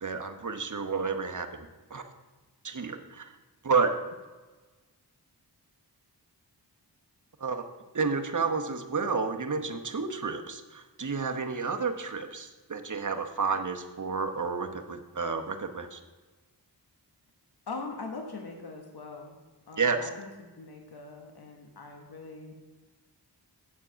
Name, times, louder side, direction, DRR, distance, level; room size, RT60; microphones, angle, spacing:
voice 1, 0.0-2.0 2.6-3.3 3.6-3.9 7.4-7.6 7.9-16.0 19.8-20.1, right 4 dB, 45° right, 5 dB, 1.0 m, -30 dB
voice 2, 17.7-19.4 19.7-20.3 20.5-22.6, left 3 dB, 65° left, 3 dB, 1.2 m, -41 dB
8.4 x 7.5 x 5.7 m, 1.3 s
wide cardioid pair, 65°, 41 cm